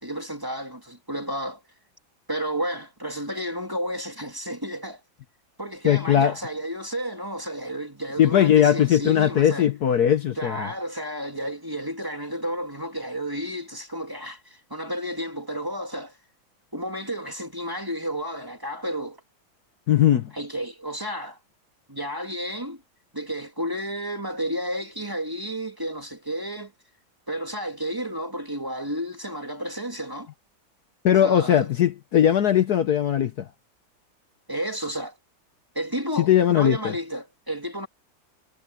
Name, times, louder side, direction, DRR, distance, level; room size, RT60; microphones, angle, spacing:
voice 1, 0.0-1.6 2.3-5.0 5.6-9.7 10.4-16.2 16.7-19.2 20.3-21.4 21.9-22.8 23.1-26.7 27.3-30.3 31.2-31.7 34.5-35.2 35.7-37.9, equal, 10° right, 2.3 m, -32 dB
voice 2, 5.8-6.3 8.2-10.7 19.9-20.3 31.0-33.5 36.2-36.9, left 10 dB, 60° left, 1.3 m, -19 dB
omnidirectional pair, 2.1 m